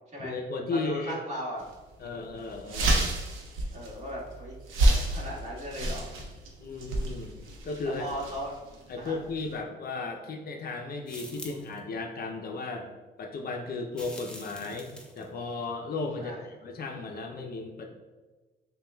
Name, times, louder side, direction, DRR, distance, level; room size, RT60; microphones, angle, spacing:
voice 1, 0.2-1.2 2.0-3.1 6.6-7.4 7.6-8.1 8.9-12.9 13.2-14.9 15.2-17.9, left 3 dB, 50° left, 2 dB, 0.5 m, -35 dB
voice 2, 0.7-1.7 3.7-6.1 7.8-8.5 9.0-9.2 16.2-16.4, equal, 35° right, -5 dB, 1.5 m, -37 dB
sound 1, 1.6-1.7 2.1-2.2 2.5-9.5, right 1 dB, 90° right, 0.7 m, -29 dB
sound 2, 11.1-11.8 13.9-15.3, left 1 dB, 5° left, 0.6 m, -45 dB
6.7 x 2.3 x 2.2 m, 1.3 s
cardioid pair, 90°, 20 cm